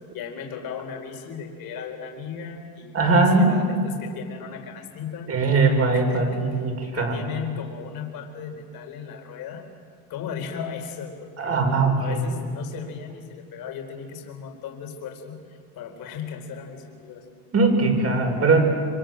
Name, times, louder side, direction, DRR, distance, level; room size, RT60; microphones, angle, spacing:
voice 1, 0.1-5.3 5.9-9.7 10.1-11.6 12.0-17.2, left 7 dB, 55° left, 3 dB, 4.3 m, -36 dB
voice 2, 2.9-3.5 5.3-7.1 11.4-12.2 17.5-18.7, right 3 dB, 35° right, 3 dB, 5.9 m, -20 dB
26.0 x 25.0 x 7.7 m, 2.2 s
supercardioid pair, 105°, 42 cm